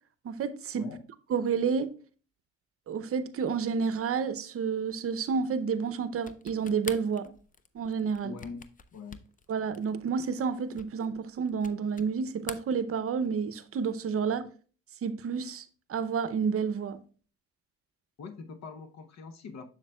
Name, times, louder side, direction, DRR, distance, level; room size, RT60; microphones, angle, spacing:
voice 1, 0.2-0.9 1.3-1.9 2.9-7.3 7.7-8.3 9.5-14.4 15.0-15.6 15.9-17.0, right 6 dB, 50° right, 0.7 m, -30 dB
sound 1, 6.2-12.1 12.4-13.4, left 5 dB, 25° left, 0.5 m, -46 dB
voice 2, 8.2-8.7 8.9-9.3 18.2-19.7, left 5 dB, 60° left, 0.9 m, -43 dB
7.2 x 6.6 x 2.2 m
cardioid pair, 90°, 30 cm